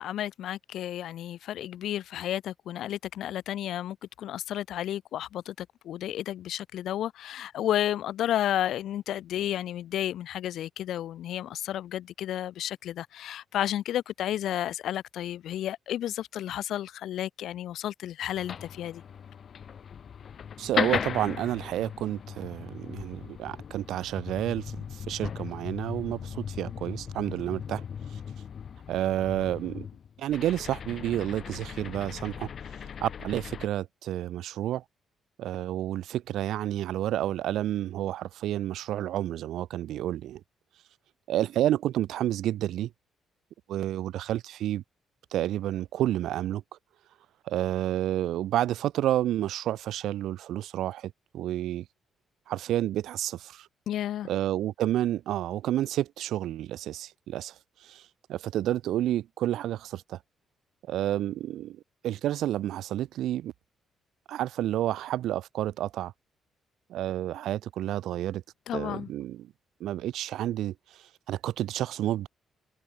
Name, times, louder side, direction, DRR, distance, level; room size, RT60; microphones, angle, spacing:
voice 1, 0.0-19.0 53.9-54.3 68.7-69.1, left 12 dB, 70° left, 1.4 m, -32 dB
sound 1, 18.3-33.7, left 7 dB, 40° left, 0.5 m, -37 dB
voice 2, 20.6-27.8 28.1-28.2 28.9-29.9 30.2-32.5 33.0-34.8 35.4-40.4 41.3-42.9 43.7-44.8 45.3-46.6 47.5-51.8 52.5-53.7 54.2-57.5 57.8-58.0 58.3-60.2 60.9-63.5 64.3-66.1 66.9-68.4 68.7-69.5 69.8-70.7 71.3-72.3, right 13 dB, 85° right, 1.0 m, -30 dB
cardioid pair, 170°, 0 cm